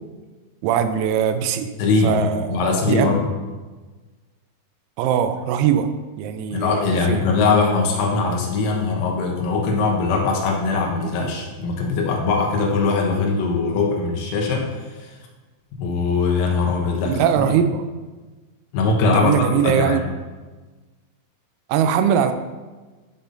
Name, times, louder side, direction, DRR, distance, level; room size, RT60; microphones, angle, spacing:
voice 1, 0.6-1.7 2.0-2.6 2.9-3.1 5.0-5.9 6.2-6.7 7.1-7.3 17.1-17.8 19.1-20.0 21.7-22.3, right 9 dB, 90° right, 8 dB, 3.4 m, -20 dB
voice 2, 1.8-2.2 2.5-3.2 6.5-15.2 15.8-17.5 18.7-20.0, left 4 dB, 85° left, 0 dB, 3.9 m, -21 dB
14.5 x 5.6 x 2.6 m, 1.3 s
omnidirectional pair, 6.0 m